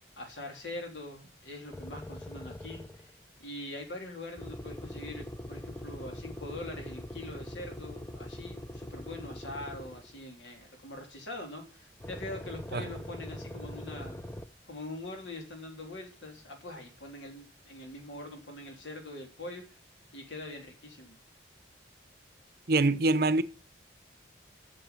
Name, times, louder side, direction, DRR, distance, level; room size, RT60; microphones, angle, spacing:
voice 1, 0.2-3.1 3.4-14.2 14.7-19.8 20.1-21.2, left 2 dB, 80° left, 3.3 m, -43 dB
sound 1, 1.7-3.2 4.4-10.2 12.0-14.5, left 1 dB, 10° left, 0.6 m, -42 dB
voice 2, 22.7-23.4, right 2 dB, 55° right, 0.7 m, -24 dB
7.9 x 7.1 x 8.3 m
head